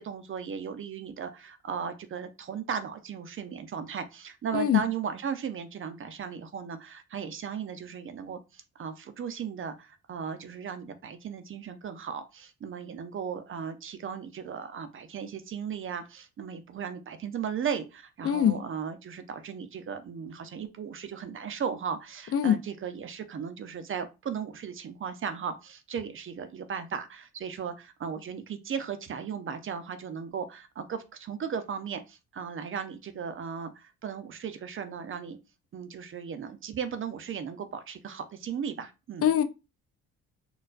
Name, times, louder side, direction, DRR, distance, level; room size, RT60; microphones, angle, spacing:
voice 1, 0.0-35.4 35.7-39.3, right 7 dB, 45° right, 0.6 m, -36 dB
voice 2, 18.2-18.6 22.3-22.6 39.2-39.4, left 9 dB, 50° left, 0.5 m, -23 dB
4.3 x 2.3 x 2.4 m
cardioid pair, 90°, 30 cm